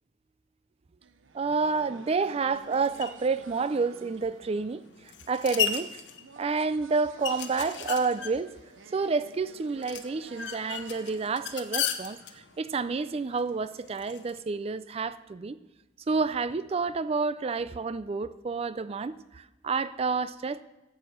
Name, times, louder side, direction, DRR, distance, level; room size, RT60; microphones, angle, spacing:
sound 1, 1.0-12.9, right 4 dB, 85° right, 0.6 m, -51 dB
voice 1, 1.3-4.8 5.3-6.0 6.4-8.6 8.9-15.6 16.1-20.6, right 4 dB, 30° right, 0.4 m, -29 dB
sound 2, 2.5-14.4, left 8 dB, 65° left, 0.8 m, -37 dB
9.5 x 7.7 x 6.4 m
head